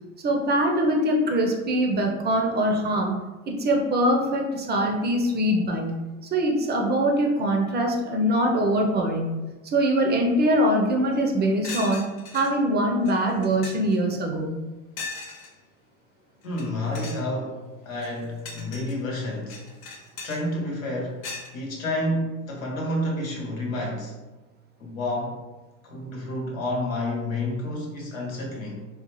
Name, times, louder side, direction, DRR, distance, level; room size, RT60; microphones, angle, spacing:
voice 1, 0.2-3.1 3.5-5.9 6.3-9.4 9.6-12.0 12.3-14.5, right 1 dB, 25° right, 1 dB, 0.6 m, -23 dB
sound 1, 11.1-11.2 11.6-12.5 13.0-13.1 13.4-13.9 15.0-15.5 16.4-16.6 16.9-17.2 17.9-18.9 19.5-20.4 21.2-21.5, left 4 dB, 55° left, 1.0 m, -37 dB
voice 2, 16.4-19.6 20.2-24.2 24.8-25.4 25.8-28.9, left 1 dB, 85° left, -1 dB, 1.1 m, -30 dB
3.9 x 2.3 x 3.0 m, 1.2 s
hypercardioid pair, 90°, 39 cm